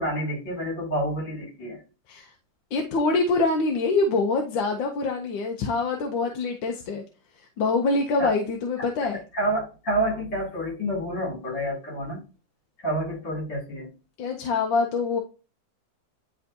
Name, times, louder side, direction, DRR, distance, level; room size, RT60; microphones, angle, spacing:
voice 1, 0.0-1.8 8.2-8.3 8.8-8.9 9.3-12.2 12.8-13.9, right 1 dB, 65° left, -3 dB, 3.6 m, -28 dB
voice 2, 2.7-7.0 7.6-9.2 14.2-15.2, left 3 dB, 85° left, 3 dB, 1.5 m, -25 dB
10.0 x 3.5 x 2.7 m, 0.33 s
omnidirectional pair, 2.0 m